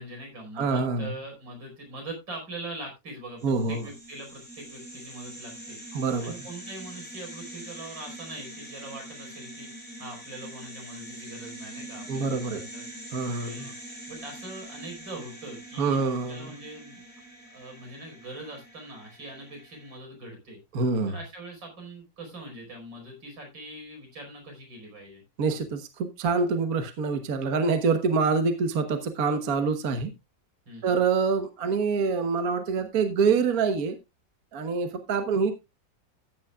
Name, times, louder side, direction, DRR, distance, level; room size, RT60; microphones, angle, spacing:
voice 1, 0.0-5.8 6.2-9.7 10.0-12.8 13.3-13.7 14.1-17.0 17.5-20.6 21.1-25.2 30.7-31.0, right 2 dB, 85° right, 2 dB, 5.6 m, -42 dB
voice 2, 0.6-1.2 3.4-3.8 5.9-6.3 12.1-12.6 13.1-13.7 15.8-16.5 20.7-21.1 25.4-30.1 30.8-34.0 34.5-35.5, right 4 dB, 55° right, 7 dB, 1.5 m, -26 dB
sound 1, 3.4-20.0, right 1 dB, 5° left, 5.5 m, -44 dB
14.0 x 9.4 x 2.4 m, 0.23 s
omnidirectional pair, 2.0 m